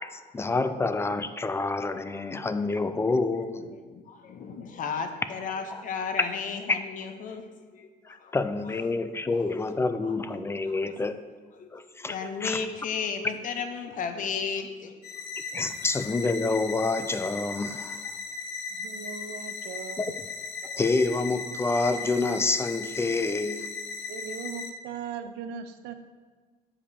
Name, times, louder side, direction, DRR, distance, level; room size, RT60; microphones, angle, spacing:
voice 1, 0.0-3.6 5.7-5.8 6.7-6.8 8.1-11.2 11.7-12.2 12.4-12.6 15.5-18.0 20.0-20.1 20.6-23.7, left 3 dB, 15° left, 11 dB, 0.3 m, -28 dB
voice 2, 3.6-7.5 7.7-8.4 8.6-8.7 9.4-9.8 10.6-10.8 11.5-15.2, left 5 dB, 50° left, 7 dB, 0.8 m, -34 dB
sound 1, 15.0-24.7, left 4 dB, 80° left, 0.7 m, -37 dB
voice 3, 18.7-20.1 24.1-25.9, right 7 dB, 90° right, 8 dB, 0.6 m, -39 dB
7.3 x 5.0 x 4.2 m, 1.4 s
cardioid pair, 110°, 17 cm